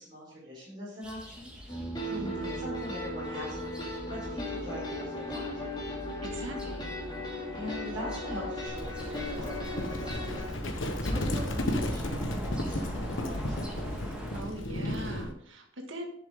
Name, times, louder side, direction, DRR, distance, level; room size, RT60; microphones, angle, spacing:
voice 1, 0.0-2.0 2.3-3.6 4.1-5.7 7.5-10.5 11.0-13.7, equal, 25° right, -8 dB, 4.3 m, -42 dB
sound 1, 1.0-14.4, equal, 5° right, 1.6 m, -43 dB
sound 2, 1.7-10.5, left 1 dB, 20° left, 2.3 m, -37 dB
voice 2, 2.1-2.6 6.2-6.9 14.3-16.1, right 1 dB, 80° right, 3 dB, 1.7 m, -41 dB
Livestock farm animals working animals, 8.7-15.3, left 1 dB, 80° left, 1.2 m, -33 dB
10.5 x 7.1 x 3.7 m, 0.68 s
head